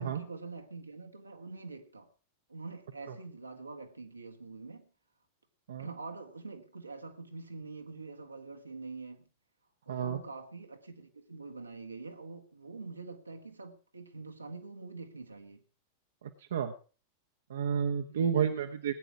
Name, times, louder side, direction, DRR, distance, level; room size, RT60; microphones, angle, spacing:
voice 1, 0.0-2.1 2.5-4.9 5.8-9.3 9.9-15.6 18.1-18.5, right 3 dB, 80° right, 1.6 m, -45 dB
voice 2, 9.9-10.2 16.2-16.7 17.5-18.9, right 7 dB, 65° right, 1.1 m, -31 dB
19.0 x 9.2 x 4.8 m
figure-of-eight pair, 90°, 0 cm